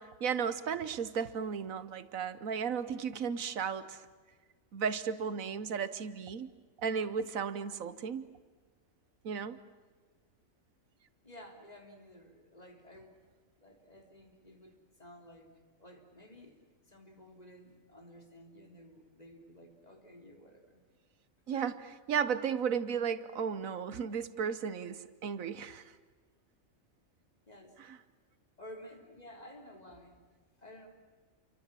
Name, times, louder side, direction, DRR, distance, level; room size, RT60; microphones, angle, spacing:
voice 1, 0.0-4.1 4.7-6.5 6.8-8.2 9.2-9.6 21.5-21.7 22.1-25.8 27.9-28.0, right 7 dB, 80° right, 14 dB, 1.4 m, -34 dB
voice 2, 11.2-13.2 13.6-15.5 15.8-20.8 21.5-21.7 27.5-27.8 28.6-30.2 30.6-30.9, left 1 dB, 30° left, 2 dB, 3.7 m, -53 dB
29.0 x 24.5 x 7.5 m, 1.4 s
omnidirectional pair, 1.4 m